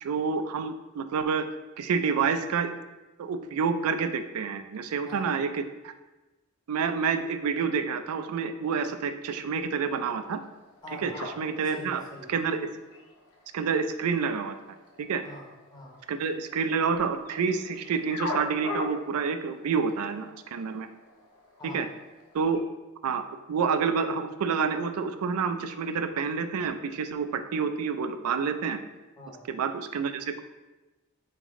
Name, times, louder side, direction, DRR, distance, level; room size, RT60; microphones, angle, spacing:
voice 1, 0.0-1.5 1.8-2.7 3.2-5.9 6.7-10.4 11.0-12.0 12.3-12.7 13.5-14.6 15.0-15.2 16.1-20.9 21.6-21.9 22.3-22.6 23.0-23.2 23.5-28.8 29.5-30.4, right 5 dB, 85° right, 9 dB, 0.4 m, -28 dB
voice 2, 5.0-5.6 10.8-12.3 15.2-15.9 21.6-21.9 29.2-29.5, left 1 dB, 20° left, -1 dB, 0.8 m, -44 dB
sound 1, 9.9-22.6, left 2 dB, 80° left, 0.7 m, -43 dB
4.1 x 3.3 x 3.5 m, 1.1 s
head